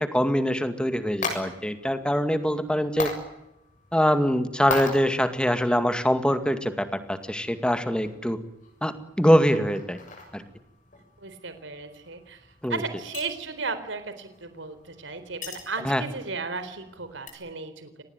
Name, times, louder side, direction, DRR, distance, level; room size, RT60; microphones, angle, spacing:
voice 1, 0.0-3.1 3.9-8.4 8.8-10.0 10.3-10.4 12.6-12.8 15.8-16.0, equal, 5° left, 9 dB, 2.2 m, -24 dB
sound 1, 0.6-17.3, left 3 dB, 40° left, 6.9 m, -41 dB
voice 2, 11.2-12.4 12.7-18.0, right 4 dB, 70° right, 10 dB, 4.0 m, -35 dB
26.0 x 19.5 x 9.2 m, 0.91 s
head